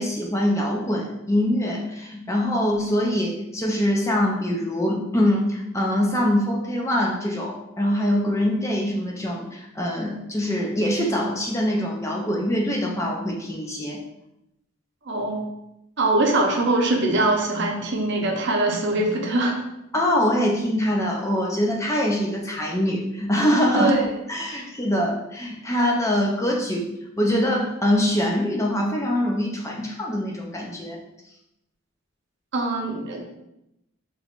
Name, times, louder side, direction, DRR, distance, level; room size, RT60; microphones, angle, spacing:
voice 1, 0.0-14.0 19.9-26.9 27.2-31.0, equal, 15° left, -1 dB, 0.4 m, -24 dB
voice 2, 15.1-15.4 16.0-19.6 23.8-24.1 24.5-24.6 32.5-33.2, right 2 dB, 55° right, 1 dB, 0.7 m, -22 dB
5.3 x 3.0 x 2.4 m, 0.86 s
head